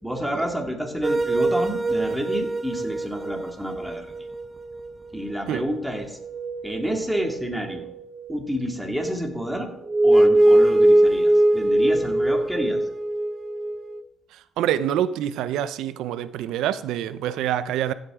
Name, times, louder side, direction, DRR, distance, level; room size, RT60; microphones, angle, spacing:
voice 1, 0.0-4.1 5.1-6.2 6.6-7.9 8.3-9.7 10.0-12.8, equal, 5° right, 2.1 m, -29 dB
sound 1, 1.0-5.4 5.8-5.9 6.2-8.8 9.4-14.0, right 1 dB, 30° right, 0.8 m, -22 dB
voice 2, 14.3-17.9, right 11 dB, 85° right, 0.5 m, -26 dB
15.0 x 8.0 x 3.6 m
cardioid pair, 95°, 0 cm